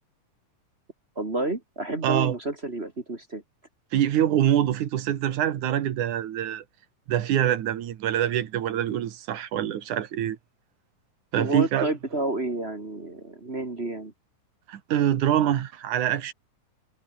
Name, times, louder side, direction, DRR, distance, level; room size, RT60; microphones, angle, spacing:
voice 1, 1.1-3.4 11.4-14.1, right 2 dB, 25° right, 1.6 m, -30 dB
voice 2, 2.0-2.3 3.9-6.6 7.1-10.4 11.3-11.9 14.7-16.3, right 11 dB, 65° right, 2.8 m, -25 dB
omnidirectional pair, 4.0 m